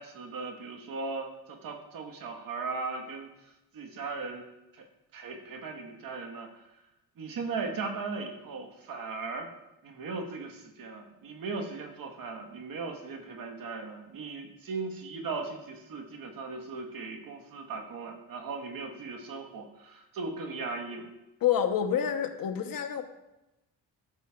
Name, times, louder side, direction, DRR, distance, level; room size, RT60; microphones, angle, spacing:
voice 1, 0.0-3.3 3.7-4.4 4.7-4.8 5.1-6.6 7.2-9.5 9.8-21.1, right 4 dB, 65° right, 4 dB, 1.3 m, -38 dB
voice 2, 21.4-23.0, left 9 dB, 65° left, 6 dB, 0.9 m, -27 dB
13.0 x 6.8 x 2.3 m, 0.95 s
cardioid pair, 90°, 37 cm